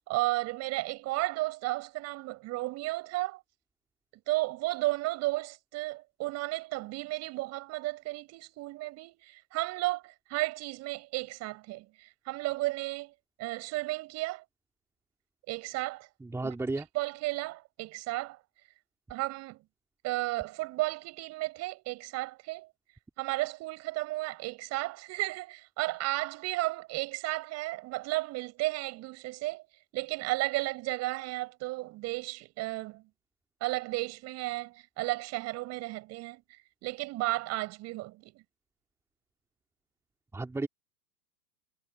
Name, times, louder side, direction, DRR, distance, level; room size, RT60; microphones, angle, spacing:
voice 1, 0.0-3.4 4.3-13.1 13.4-14.4 15.5-16.1 16.4-16.5 16.9-18.4 19.1-19.6 20.0-22.7 23.2-29.7 29.9-33.0 33.6-36.4 36.8-38.4, right 20 dB, 30° right, 5.0 m, -33 dB
voice 2, 16.2-16.9 40.3-40.7, right 2 dB, 5° right, 3.0 m, -33 dB
figure-of-eight pair, 110°, 48 cm